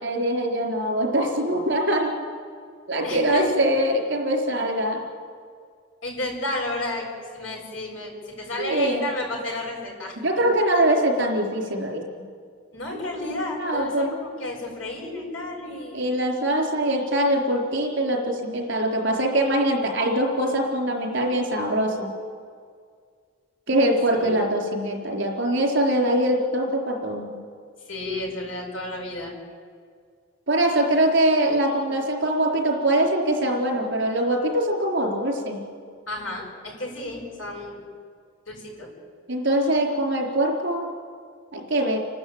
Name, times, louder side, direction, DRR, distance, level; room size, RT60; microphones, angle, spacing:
voice 1, 0.0-2.1 2.9-5.0 8.6-9.1 10.2-12.0 13.6-14.1 15.9-22.1 23.7-27.3 30.5-35.6 39.3-40.9 41.5-42.0, right 1 dB, 65° right, 2 dB, 4.4 m, -23 dB
voice 2, 3.0-3.5 6.0-7.1 7.3-10.1 12.7-16.0 24.1-24.5 27.9-29.3 36.1-37.9 38.5-38.9, left 1 dB, 85° left, -1 dB, 7.3 m, -32 dB
29.5 x 12.5 x 9.0 m, 2.1 s
head